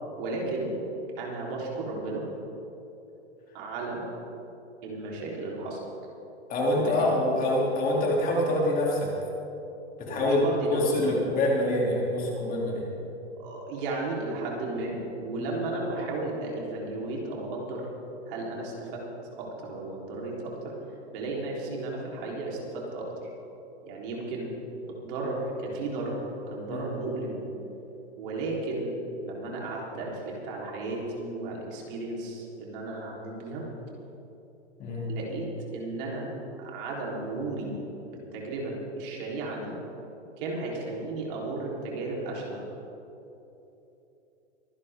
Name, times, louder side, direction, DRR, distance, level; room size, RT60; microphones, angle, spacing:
voice 1, 0.2-0.8 1.2-2.2 3.5-4.0 4.8-5.8 6.7-7.2 10.1-11.2 13.4-17.9 18.3-19.0 19.4-20.7 21.1-23.3 23.8-24.5 24.9-26.2 26.5-27.4 28.2-28.9 29.2-33.6 35.1-35.5 35.7-36.3 36.6-37.7 38.1-39.8 40.4-42.6, right 2 dB, 50° right, -3 dB, 3.8 m, -34 dB
voice 2, 6.5-9.1 10.0-12.9 15.4-15.5 26.7-26.8 34.8-35.0, left 1 dB, 25° left, -3 dB, 3.0 m, -25 dB
24.0 x 11.0 x 3.7 m, 3.0 s
hypercardioid pair, 140°, 35 cm